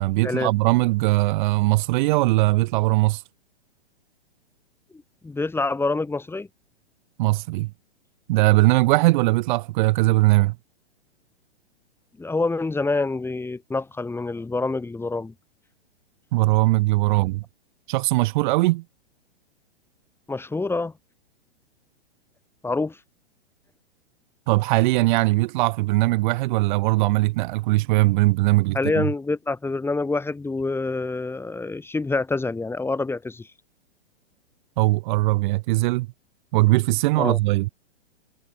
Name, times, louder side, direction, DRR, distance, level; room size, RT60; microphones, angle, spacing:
voice 1, 0.0-3.2 7.2-7.7 8.3-10.5 16.3-17.4 17.9-18.8 24.5-29.1 34.8-36.1 36.5-37.7, right 20 dB, 45° right, 1.8 m, -20 dB
voice 2, 5.2-6.5 12.2-15.3 17.1-17.2 20.3-20.9 22.6-23.0 28.7-33.5 37.2-37.4, left 3 dB, 5° left, 2.9 m, -26 dB
hypercardioid pair, 120°, 33 cm